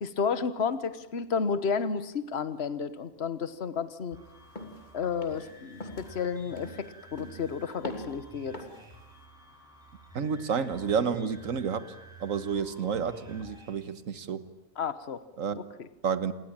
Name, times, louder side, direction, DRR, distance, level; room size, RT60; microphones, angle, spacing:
voice 1, 0.0-4.2 4.9-8.6 14.8-15.2 15.5-15.9, left 5 dB, 50° left, 1.5 m, -32 dB
sound 1, 4.1-13.7, right 2 dB, 5° right, 7.7 m, -51 dB
sound 2, 4.6-4.8 5.2-5.5 5.8-6.1 6.6-6.9 7.2-7.5 7.8-8.2 8.5-8.9, left 1 dB, 35° left, 3.3 m, -41 dB
voice 2, 10.2-11.9 12.2-14.4 15.4-15.6 16.0-16.3, right 6 dB, 70° right, 1.7 m, -30 dB
28.0 x 21.0 x 8.9 m
omnidirectional pair, 1.4 m